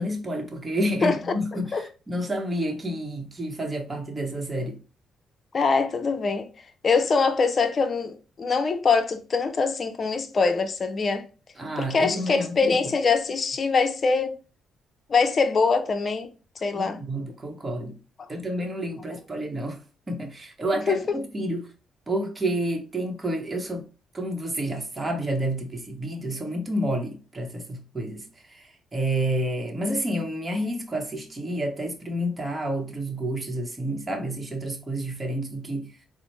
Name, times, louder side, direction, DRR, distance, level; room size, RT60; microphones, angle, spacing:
voice 1, 0.0-4.8 11.6-12.7 16.7-18.0 18.3-19.8 20.1-21.7 22.1-23.8 24.1-28.2 28.6-28.7 28.9-35.9, right 1 dB, 25° right, 0.9 m, -29 dB
voice 2, 1.5-1.8 5.5-6.5 6.8-11.3 11.8-14.4 15.1-16.3 16.6-17.0 18.2-18.3 20.9-21.2, left 4 dB, 40° left, 0.6 m, -23 dB
4.0 x 2.0 x 3.1 m
cardioid pair, 90°, 0 cm